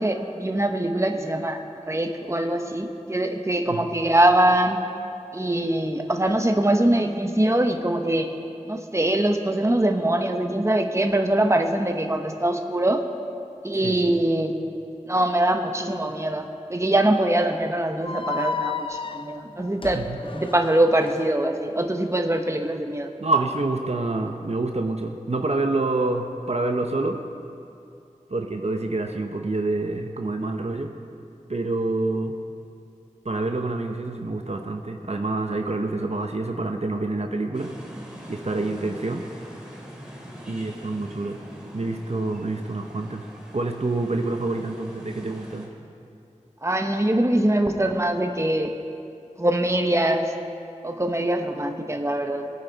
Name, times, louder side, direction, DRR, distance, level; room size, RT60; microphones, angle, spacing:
voice 1, 0.0-4.8 5.3-8.3 8.6-13.0 13.6-14.6 15.1-20.0 20.3-23.1 46.6-48.7 49.4-50.3 50.8-52.5, right 1 dB, 20° right, 4 dB, 1.0 m, -23 dB
sound 1, 18.0-21.2, left 4 dB, 40° left, 0.5 m, -32 dB
voice 2, 23.2-27.2 28.3-30.9 31.5-32.4 33.2-37.7 38.3-39.3 40.5-41.4 41.7-43.3 43.5-45.7, right 2 dB, 55° right, 4 dB, 0.8 m, -27 dB
sound 2, 37.5-45.7, equal, 5° right, 2.8 m, -43 dB
22.0 x 9.3 x 4.0 m, 2.6 s
wide cardioid pair, 55°, 13 cm